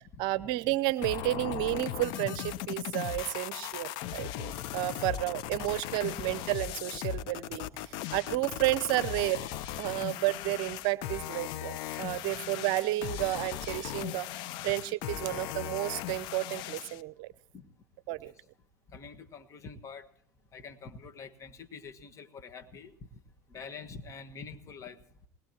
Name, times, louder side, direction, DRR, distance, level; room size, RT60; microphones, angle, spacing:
voice 1, 0.2-9.4 9.8-14.3 14.6-17.3 18.1-18.3, right 17 dB, 60° right, 17 dB, 0.7 m, -31 dB
sound 1, 1.0-17.0, left 12 dB, 60° left, 0.8 m, -38 dB
voice 2, 18.9-20.1 20.5-22.9 23.5-25.0, left 5 dB, 35° left, 7 dB, 1.7 m, -46 dB
20.5 x 19.5 x 3.0 m, 0.63 s
hypercardioid pair, 80°, 9 cm